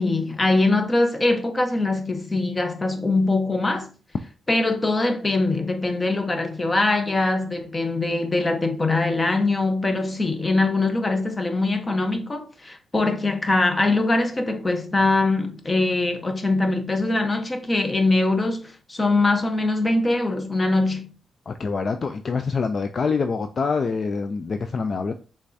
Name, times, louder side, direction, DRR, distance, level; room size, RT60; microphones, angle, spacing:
voice 1, 0.0-3.9 4.5-21.1, left 2 dB, 25° left, 0.9 m, -22 dB
voice 2, 21.5-25.1, left 4 dB, 50° left, 0.4 m, -25 dB
5.2 x 3.5 x 2.7 m
cardioid pair, 90°, 0 cm